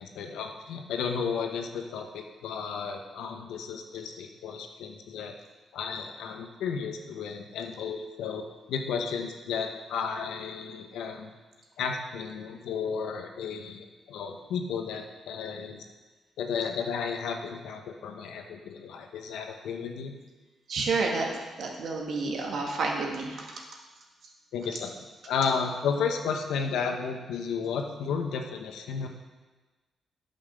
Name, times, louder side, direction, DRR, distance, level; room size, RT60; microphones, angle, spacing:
voice 1, 0.0-5.3 5.7-11.3 11.8-15.8 16.4-20.1 24.5-24.9 25.3-29.1, left 6 dB, 85° left, 4 dB, 1.0 m, -33 dB
voice 2, 20.7-21.3 21.6-23.6, right 3 dB, 70° right, 0 dB, 1.8 m, -30 dB
8.9 x 5.6 x 6.7 m, 1.2 s
cardioid pair, 75°, 0 cm